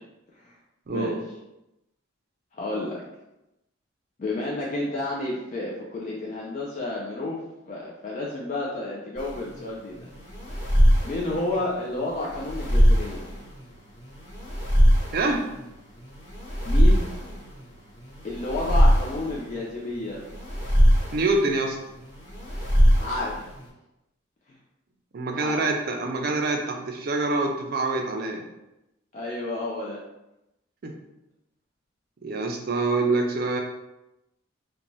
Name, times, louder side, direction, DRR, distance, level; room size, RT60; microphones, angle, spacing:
voice 1, 0.9-1.2 15.1-15.6 21.1-21.8 25.1-28.4 30.8-30.9 32.2-33.6, right 3 dB, 45° right, 2 dB, 0.4 m, -25 dB
voice 2, 2.5-3.0 4.2-10.1 11.0-13.3 16.6-17.1 18.2-20.2 23.0-23.4 25.3-25.6 29.1-30.0, left 2 dB, 35° left, -4 dB, 0.3 m, -31 dB
sound 1, 9.2-23.7, equal, 70° left, 1.4 m, -22 dB
2.6 x 2.2 x 3.0 m, 0.93 s
head